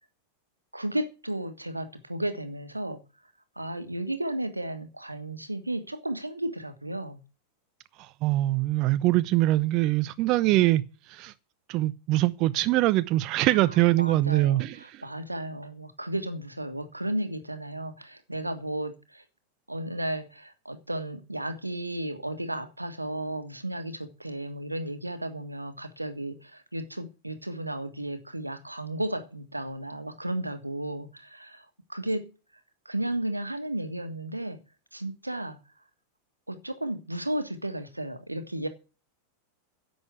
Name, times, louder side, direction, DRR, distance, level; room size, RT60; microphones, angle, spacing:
voice 1, 0.7-3.0 3.6-7.2 13.5-19.2 19.7-32.3 32.8-34.6 34.9-35.6 36.5-38.7, right 1 dB, 85° right, 1.5 m, -34 dB
voice 2, 8.0-11.3 11.7-15.0, right 16 dB, 40° right, 0.6 m, -23 dB
10.5 x 7.9 x 8.1 m
figure-of-eight pair, 90°, 0 cm